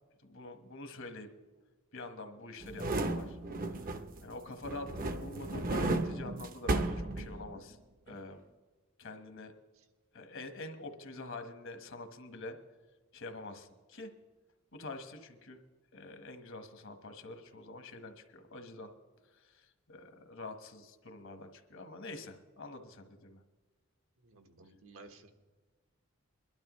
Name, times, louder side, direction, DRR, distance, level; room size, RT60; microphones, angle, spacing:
voice 1, 0.2-1.3 1.9-3.4 3.8-3.9 4.2-7.8 8.1-8.4 9.0-9.5 10.1-12.6 13.1-14.1 14.7-15.6 15.9-18.9 19.3-23.4, left 2 dB, 65° left, 7 dB, 1.3 m, -46 dB
sound 1, 2.6-4.3 4.6-7.7 8.1-8.2, right 2 dB, 40° right, 0.7 m, -34 dB
voice 2, 24.2-25.3, right 3 dB, 75° right, 5 dB, 1.3 m, -55 dB
23.0 x 12.0 x 3.1 m, 1.3 s
head